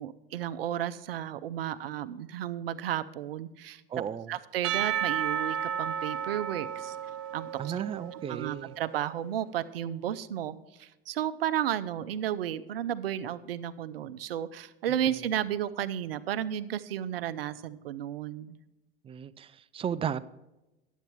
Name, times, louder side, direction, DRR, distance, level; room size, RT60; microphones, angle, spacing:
voice 1, 0.0-3.8 4.3-7.0 7.3-7.7 8.3-18.5, right 10 dB, 80° right, 13 dB, 0.6 m, -33 dB
voice 2, 3.9-4.3 7.6-8.7 15.1-15.2 19.0-20.3, right 8 dB, 20° right, 15 dB, 0.4 m, -35 dB
Percussion / Church bell, 4.6-8.8, right 9 dB, 50° right, 1.1 m, -33 dB
10.5 x 8.2 x 4.5 m, 0.99 s
hypercardioid pair, 85°, 29 cm